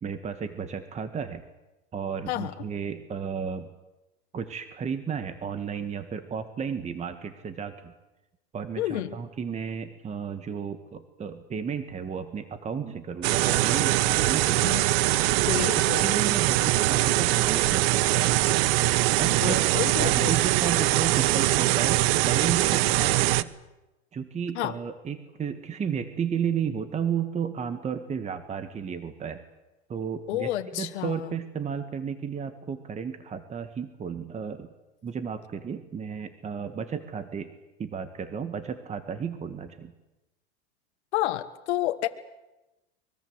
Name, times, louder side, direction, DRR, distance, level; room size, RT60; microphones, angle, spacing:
voice 1, 0.0-1.4 1.9-3.7 4.3-7.9 8.5-14.8 15.5-15.6 16.0-18.4 19.2-19.7 20.0-23.5 24.1-29.4 29.9-34.7 35.0-37.5 37.8-39.9, right 7 dB, 20° right, 9 dB, 1.7 m, -33 dB
voice 2, 8.8-9.2 14.6-14.8 15.5-16.2 19.3-20.4 24.5-24.7 30.3-31.3 41.1-42.1, left 14 dB, 75° left, 7 dB, 1.6 m, -30 dB
sound 1, 13.2-23.4, right 17 dB, 60° right, 1.1 m, -22 dB
24.5 x 22.0 x 8.1 m, 1.0 s
supercardioid pair, 130°, 33 cm